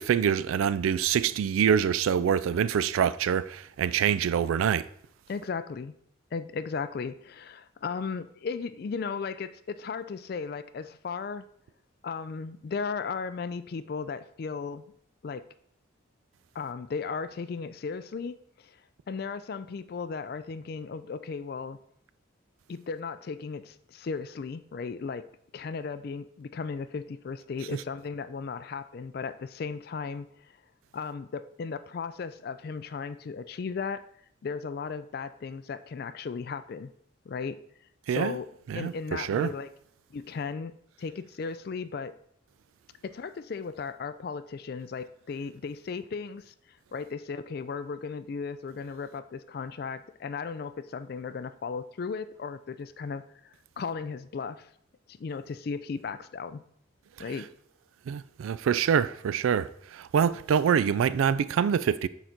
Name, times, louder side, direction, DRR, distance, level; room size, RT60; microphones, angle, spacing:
voice 1, 0.0-4.9 38.1-38.3 38.7-39.5 58.1-62.1, right 8 dB, 85° right, 0.3 m, -25 dB
voice 2, 5.3-5.9 6.3-11.4 12.0-14.8 15.2-15.5 16.5-18.8 19.1-21.8 22.7-30.3 30.9-34.0 34.4-36.9 37.3-37.6 38.1-38.5 38.7-39.7 40.1-42.2 43.0-46.5 46.9-54.7 55.1-56.6 57.2-57.5, left 5 dB, 50° left, 0.3 m, -36 dB
6.4 x 4.0 x 4.4 m
head